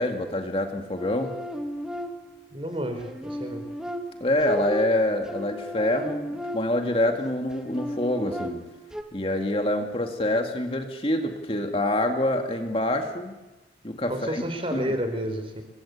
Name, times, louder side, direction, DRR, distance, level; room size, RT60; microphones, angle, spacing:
voice 1, 0.0-1.3 4.2-8.6 9.1-13.4 13.8-14.4 14.7-14.9, left 1 dB, 30° left, 4 dB, 2.3 m, -26 dB
sound 1, 1.0-2.5 3.0-7.0 7.5-9.0, equal, 5° right, 2.0 m, -35 dB
voice 2, 2.5-3.6 14.1-15.6, equal, 30° right, 7 dB, 4.5 m, -30 dB
28.5 x 23.0 x 8.5 m, 1.1 s
head